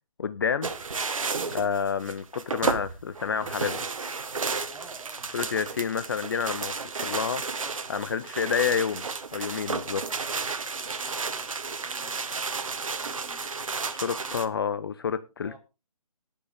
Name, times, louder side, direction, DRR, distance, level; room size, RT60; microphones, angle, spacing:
voice 1, 0.2-0.7 1.5-3.9 5.3-6.8 7.0-7.4 7.9-9.0 9.3-10.0 14.0-15.6, left 7 dB, 35° left, 0.7 m, -29 dB
sound 1, 0.6-14.5, right 4 dB, 60° right, 1.6 m, -32 dB
voice 2, 4.7-6.0 7.1-8.8 9.9-14.5 15.4-15.6, right 4 dB, 5° right, 1.8 m, -53 dB
19.5 x 8.5 x 3.6 m
figure-of-eight pair, 150°, 20 cm